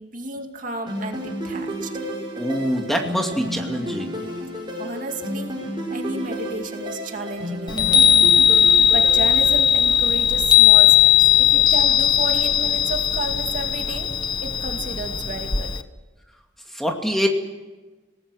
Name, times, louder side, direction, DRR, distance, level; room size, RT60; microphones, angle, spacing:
voice 1, 0.0-1.9 4.8-5.5 5.9-8.3 8.9-11.1 11.4-14.1 14.4-15.7, right 2 dB, 45° right, 4 dB, 2.4 m, -32 dB
sound 1, 0.9-9.6, equal, 25° right, 6.3 m, -31 dB
voice 2, 2.4-4.2 16.7-17.3, equal, ahead, 2 dB, 2.4 m, -24 dB
Chime, 7.7-15.8, left 9 dB, 25° left, 0.9 m, -17 dB
28.5 x 19.0 x 6.4 m, 1.2 s
head